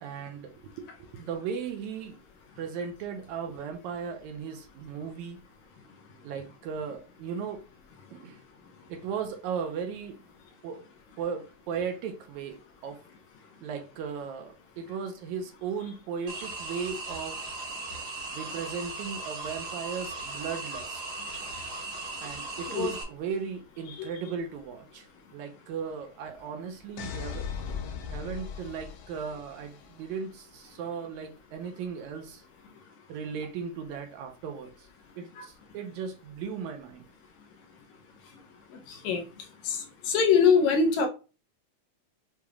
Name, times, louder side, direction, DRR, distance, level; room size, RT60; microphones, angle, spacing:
voice 1, 0.0-2.2 2.6-5.4 6.2-7.6 8.1-8.4 8.9-10.2 10.6-10.8 11.2-13.0 13.6-17.4 18.3-21.2 22.2-27.5 28.1-32.4 33.1-34.9 35.2-37.1, right 6 dB, 80° right, 1.8 m, -36 dB
sound 1, 16.3-23.0, right 3 dB, 55° right, 1.1 m, -38 dB
sound 2, 27.0-29.8, left 7 dB, 90° left, 1.4 m, -38 dB
voice 2, 38.9-39.2 39.6-41.1, left 6 dB, 75° left, 2.0 m, -23 dB
6.8 x 2.8 x 2.4 m
omnidirectional pair, 3.6 m